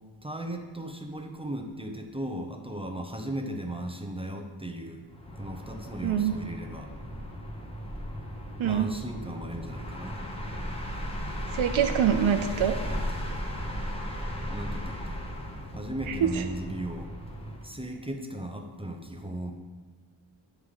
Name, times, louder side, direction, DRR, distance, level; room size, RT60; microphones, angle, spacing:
voice 1, 0.2-5.0 5.4-6.9 8.6-10.2 14.5-15.2 15.7-17.1 17.6-19.5, right 1 dB, 10° right, 3 dB, 0.7 m, -36 dB
sound 1, 5.1-17.7, equal, 10° left, 1.0 m, -36 dB
voice 2, 6.0-6.3 8.6-8.9 11.5-12.8 16.1-16.4, right 9 dB, 85° right, 7 dB, 0.6 m, -25 dB
9.9 x 3.7 x 4.9 m, 1.4 s
wide cardioid pair, 90°, 47 cm